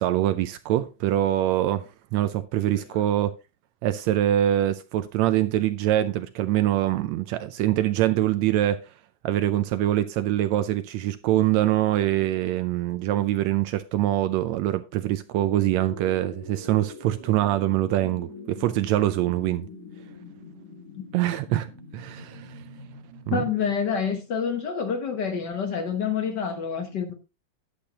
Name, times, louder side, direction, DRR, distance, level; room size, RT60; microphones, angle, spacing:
voice 1, 0.0-1.8 2.1-3.3 3.8-8.8 9.2-19.7 21.1-22.6 23.3-23.4, right 13 dB, 80° right, 1.6 m, -24 dB
sound 1, 15.3-23.9, left 3 dB, 5° left, 3.3 m, -43 dB
voice 2, 23.3-27.1, left 6 dB, 70° left, 1.0 m, -27 dB
11.5 x 8.2 x 2.9 m
omnidirectional pair, 3.7 m